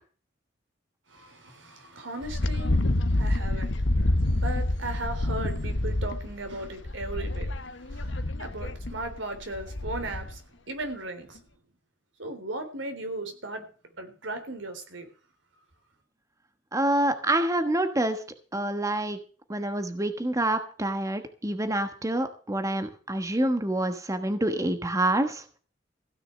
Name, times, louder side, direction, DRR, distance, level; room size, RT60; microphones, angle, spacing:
voice 1, 1.1-2.8 3.2-7.5 7.8-10.4 10.7-11.4 12.2-13.7 14.0-15.1, right 2 dB, 85° right, 7 dB, 3.7 m, -37 dB
Wind, 2.2-10.4, left 1 dB, 75° left, 1.1 m, -28 dB
voice 2, 16.7-18.2 18.5-19.2 19.5-25.4, right 1 dB, 15° right, 8 dB, 1.3 m, -27 dB
16.0 x 6.7 x 7.6 m, 0.39 s
head